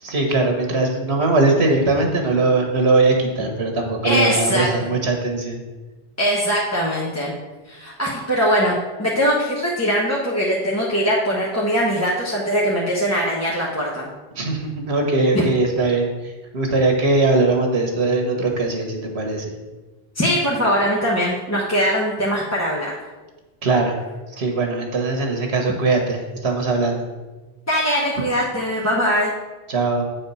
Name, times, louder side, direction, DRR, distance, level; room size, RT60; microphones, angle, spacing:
voice 1, 0.0-5.6 14.4-19.5 23.6-24.0 24.4-27.0 29.7-30.0, right 3 dB, 85° right, 2 dB, 1.4 m, -20 dB
voice 2, 4.0-4.7 6.2-7.3 7.7-14.1 15.3-15.5 20.1-22.9 27.7-29.3, equal, 15° left, -6 dB, 1.0 m, -21 dB
8.4 x 4.3 x 5.4 m, 1.2 s
omnidirectional pair, 1.1 m